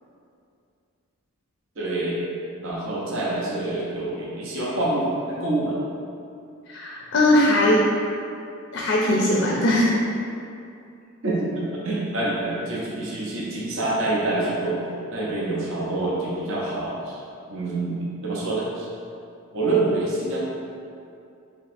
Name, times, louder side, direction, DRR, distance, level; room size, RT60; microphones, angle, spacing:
voice 1, 1.8-2.2 2.6-5.8 11.2-14.8 15.1-17.2 17.5-18.9 19.5-20.4, right 2 dB, 60° right, -6 dB, 0.6 m, -26 dB
voice 2, 6.7-7.9 8.7-10.0, left 1 dB, 55° left, -4 dB, 0.4 m, -20 dB
5.1 x 2.8 x 2.5 m, 2.5 s
head